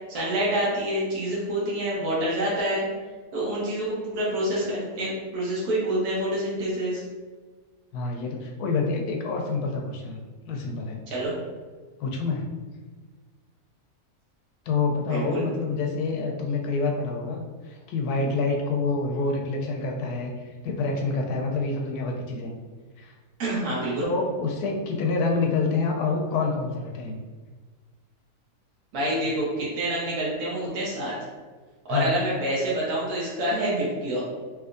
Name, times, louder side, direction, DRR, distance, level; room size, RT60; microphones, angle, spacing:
voice 1, 0.1-2.9 3.3-7.0 11.1-11.4 15.1-15.5 23.4-24.1 28.9-31.1 31.8-34.2, right 1 dB, 80° right, -6 dB, 1.3 m, -27 dB
voice 2, 7.9-11.0 12.0-12.5 14.7-22.5 23.0-23.1 24.0-27.2 31.9-32.2, left 3 dB, 85° left, 1 dB, 1.1 m, -27 dB
3.4 x 2.8 x 2.5 m, 1.4 s
omnidirectional pair, 1.6 m